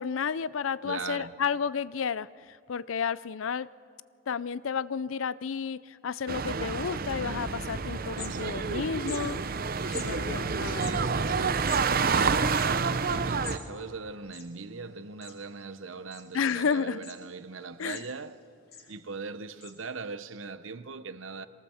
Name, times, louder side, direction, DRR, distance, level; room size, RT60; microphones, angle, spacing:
voice 1, 0.0-3.7 4.3-9.4 9.9-11.0 16.3-17.1 17.8-18.0, left 6 dB, 80° left, 0.5 m, -32 dB
voice 2, 0.8-1.4 8.2-8.8 10.6-11.6 12.0-18.4 18.9-21.5, right 4 dB, 75° right, 0.9 m, -40 dB
sound 1, 6.3-13.6, right 5 dB, 45° right, 0.7 m, -28 dB
sound 2, 8.2-8.7 9.0-9.2 9.9-10.1 10.7-13.6 13.9-14.0 14.2-14.9 15.2-15.6 16.1-16.6 17.0-17.2 17.6-18.3 18.7-18.9 19.6-19.7, left 6 dB, 55° left, 2.8 m, -45 dB
23.0 x 18.5 x 7.1 m
head